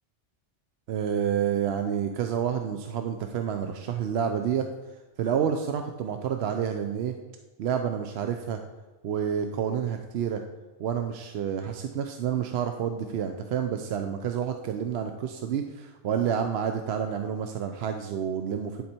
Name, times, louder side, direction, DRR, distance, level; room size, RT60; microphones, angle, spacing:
voice 1, 0.9-4.7 5.2-7.2 7.6-8.6 9.0-10.4 10.8-18.8, right 8 dB, 70° right, 6 dB, 0.8 m, -29 dB
10.5 x 4.4 x 4.3 m, 1.3 s
omnidirectional pair, 1.2 m